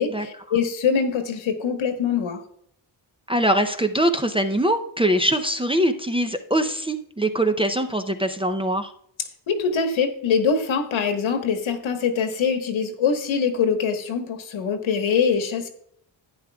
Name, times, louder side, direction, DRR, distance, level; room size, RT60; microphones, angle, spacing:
voice 1, 0.0-2.4 9.5-15.7, left 6 dB, 75° left, 5 dB, 1.4 m, -23 dB
voice 2, 3.3-8.9, right 1 dB, 10° right, 6 dB, 0.5 m, -22 dB
11.0 x 9.4 x 2.3 m, 0.67 s
cardioid pair, 100°, 48 cm